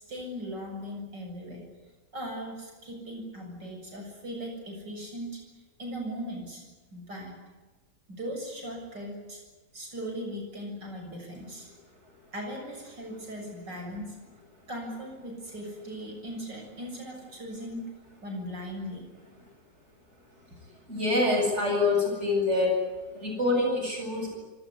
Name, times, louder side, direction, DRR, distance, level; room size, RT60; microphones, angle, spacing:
voice 1, 0.0-1.7 2.1-5.4 5.8-6.6 6.9-7.3 8.1-9.4 9.7-11.7 12.3-14.2 14.7-17.8 18.2-19.0, equal, 80° right, 2 dB, 7.8 m, -38 dB
voice 2, 20.9-22.7 23.1-24.4, left 2 dB, 40° right, 1 dB, 8.2 m, -25 dB
26.0 x 20.0 x 9.7 m, 1.3 s
omnidirectional pair, 1.9 m